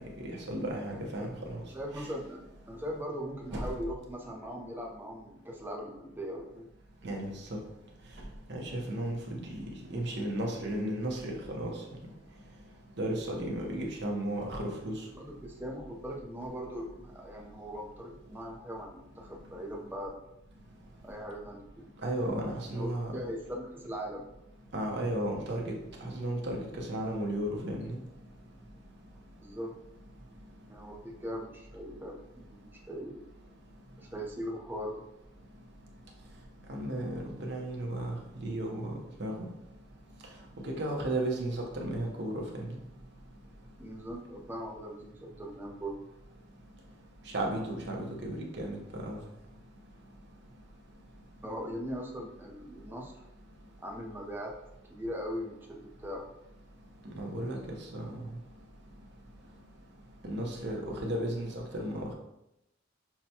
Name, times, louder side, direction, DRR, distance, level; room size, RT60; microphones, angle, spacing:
voice 1, 0.2-1.6 1.9-2.1 3.5-3.7 7.0-7.3 8.5-11.7 13.0-15.0 22.0-23.1 24.7-25.7 26.0-28.0 36.7-39.5 40.6-42.8 47.3-49.2 57.2-58.3 60.2-62.1, right 1 dB, 60° right, 0 dB, 0.8 m, -34 dB
voice 2, 1.7-2.4 2.7-6.7 15.2-20.2 21.0-21.9 22.7-24.2 29.4-29.7 30.7-32.1 32.9-33.2 34.0-35.0 43.8-46.0 51.4-53.1 53.8-54.5 54.9-56.2, equal, 10° right, -1 dB, 0.6 m, -40 dB
5.7 x 2.2 x 2.8 m, 0.85 s
head